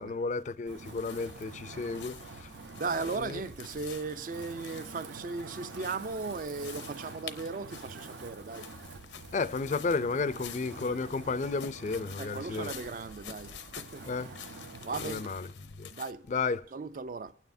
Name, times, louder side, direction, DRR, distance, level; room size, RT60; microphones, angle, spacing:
voice 1, 0.0-2.5 3.2-3.4 9.3-12.7 14.0-14.3 15.0-15.9 16.3-16.6, left 4 dB, 40° left, 0.4 m, -33 dB
Wind, 0.7-15.4, right 3 dB, 75° right, 0.7 m, -47 dB
sound 1, 0.8-16.1, left 8 dB, 85° left, 0.7 m, -49 dB
voice 2, 2.7-8.7 12.2-14.1 14.8-15.3 15.9-16.3 16.7-17.3, right 4 dB, 50° right, 0.4 m, -37 dB
25.0 x 9.1 x 2.6 m
head